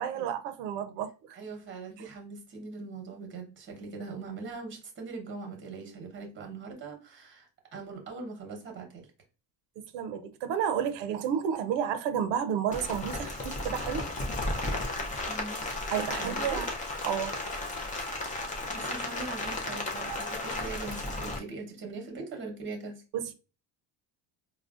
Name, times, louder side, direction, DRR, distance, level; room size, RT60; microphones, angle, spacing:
voice 1, 0.0-1.4 9.8-14.0 15.9-16.7 17.0-17.4 23.1-23.3, right 8 dB, 85° right, 0.5 m, -31 dB
voice 2, 1.3-9.1 15.3-15.6 16.2-16.6 18.3-23.0, right 4 dB, 25° right, 1.0 m, -41 dB
Rain, 12.7-21.4, left 2 dB, 20° left, 0.4 m, -34 dB
4.8 x 2.1 x 2.4 m
cardioid pair, 165°, 42 cm